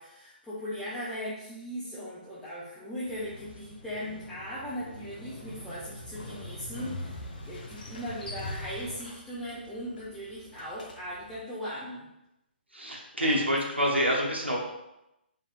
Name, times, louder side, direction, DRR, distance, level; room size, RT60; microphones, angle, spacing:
voice 1, 0.0-12.1 13.2-13.5, equal, 5° left, -10 dB, 0.4 m, -38 dB
Motorcycle, 3.0-11.4, left 1 dB, 50° left, 0.6 m, -43 dB
voice 2, 12.7-14.6, equal, 85° right, -3 dB, 0.7 m, -27 dB
2.8 x 2.6 x 2.4 m, 0.88 s
figure-of-eight pair, 130°, 6 cm